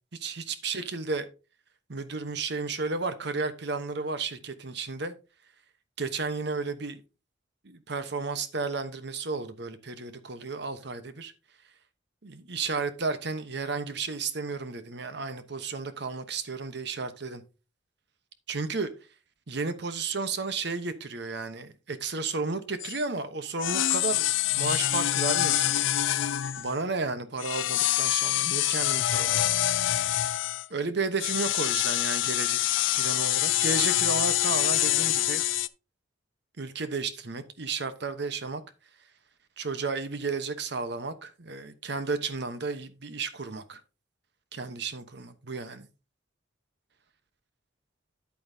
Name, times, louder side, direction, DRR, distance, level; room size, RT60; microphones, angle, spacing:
voice 1, 0.1-1.3 1.9-5.1 6.0-7.0 7.6-11.3 12.2-17.4 18.5-18.9 19.5-24.3 24.6-25.8 26.6-29.4 30.0-30.2 30.7-35.4 36.6-38.6 39.6-43.8 44.5-45.9, right 4 dB, 60° right, 1.0 m, -33 dB
sound 1, 22.8-23.0 23.6-26.8 27.4-30.7 31.2-35.7, left 14 dB, 80° left, 0.4 m, -26 dB
9.5 x 8.5 x 2.8 m
head